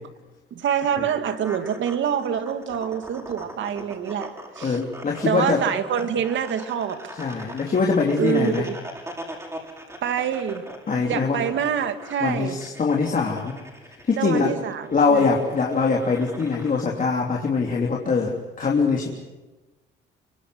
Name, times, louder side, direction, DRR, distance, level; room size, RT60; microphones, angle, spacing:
voice 1, 0.5-4.8 5.2-7.1 8.2-8.7 10.0-10.7 11.1-12.6 14.2-15.3, right 8 dB, 70° right, 9 dB, 2.3 m, -26 dB
sound 1, 0.6-16.8, equal, 15° right, 6.9 m, -42 dB
voice 2, 4.6-5.6 7.2-8.7 10.9-11.4 12.2-13.6 14.0-14.5 14.9-19.1, left 4 dB, 40° left, -1 dB, 3.4 m, -23 dB
24.5 x 24.0 x 8.0 m, 1.1 s
cardioid pair, 90°, 20 cm